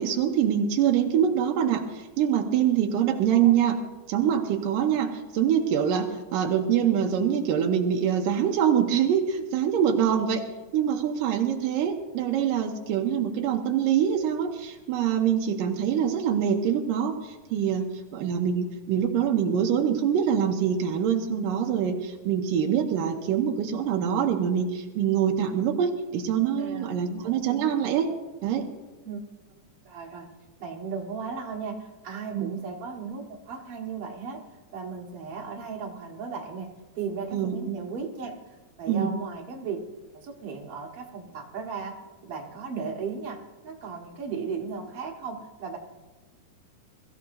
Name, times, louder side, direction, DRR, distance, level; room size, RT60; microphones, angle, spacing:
voice 1, 0.0-3.8 4.1-10.4 10.7-17.1 17.5-17.9 18.1-28.1 28.4-28.7 32.3-32.5 37.3-37.8 38.9-39.1, right 8 dB, 85° right, 3 dB, 2.6 m, -24 dB
voice 2, 26.6-27.8 29.0-29.2 29.8-30.3 30.6-34.4 34.7-39.8 40.1-41.9 42.2-43.4 43.6-45.8, right 5 dB, 50° right, -1 dB, 2.5 m, -36 dB
21.5 x 14.5 x 2.7 m, 1.2 s
omnidirectional pair, 3.9 m